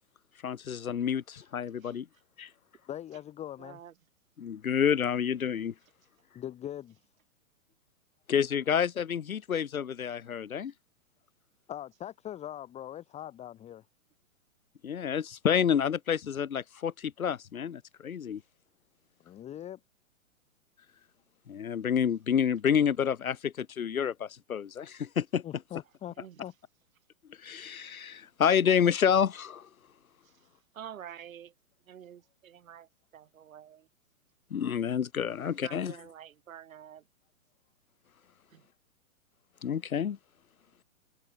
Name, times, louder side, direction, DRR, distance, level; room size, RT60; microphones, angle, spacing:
voice 1, 0.4-2.1 2.4-2.5 4.4-5.7 8.3-10.7 14.8-18.4 21.5-25.4 27.4-29.7 34.5-36.0 39.6-40.2, left 8 dB, 85° left, 1.5 m, -29 dB
voice 2, 2.9-3.8 6.3-7.0 11.7-13.8 19.2-19.8 25.4-26.5, left 11 dB, 15° left, 1.2 m, -41 dB
voice 3, 3.6-3.9 26.2-26.4 30.8-31.5 31.9-32.9 33.1-33.9 35.4-37.0 38.5-38.6, right 9 dB, 70° right, 1.9 m, -48 dB
hypercardioid pair, 130°, 41 cm